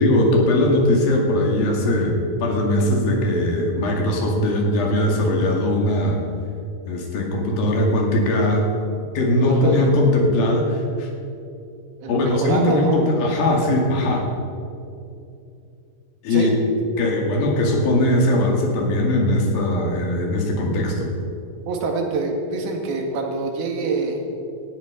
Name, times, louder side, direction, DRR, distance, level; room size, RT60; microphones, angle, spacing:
voice 1, 0.0-6.2 6.9-8.7 9.2-11.1 12.1-14.3 16.2-16.5 17.0-21.1, left 1 dB, 70° left, 0 dB, 3.9 m, -20 dB
voice 2, 9.5-9.9 12.0-13.0 16.3-16.5 21.7-24.2, right 4 dB, 75° right, 2 dB, 3.6 m, -26 dB
18.5 x 13.5 x 5.1 m, 2.6 s
omnidirectional pair, 4.5 m